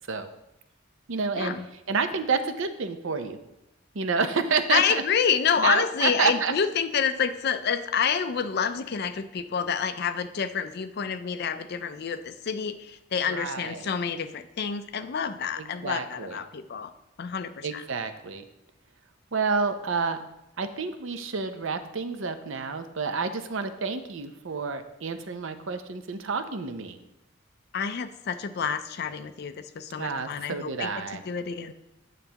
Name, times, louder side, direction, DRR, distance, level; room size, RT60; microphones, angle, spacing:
voice 1, 1.1-1.6 1.9-3.4 3.9-5.0 5.6-6.5 13.3-13.9 15.6-16.4 17.6-18.4 19.3-20.2 20.6-27.0 30.0-31.2, right 5 dB, 70° right, 9 dB, 0.6 m, -29 dB
voice 2, 4.7-16.9 17.2-17.8 27.7-30.9 31.3-31.7, left 7 dB, 55° left, 10 dB, 0.5 m, -28 dB
9.3 x 6.6 x 2.9 m, 0.92 s
head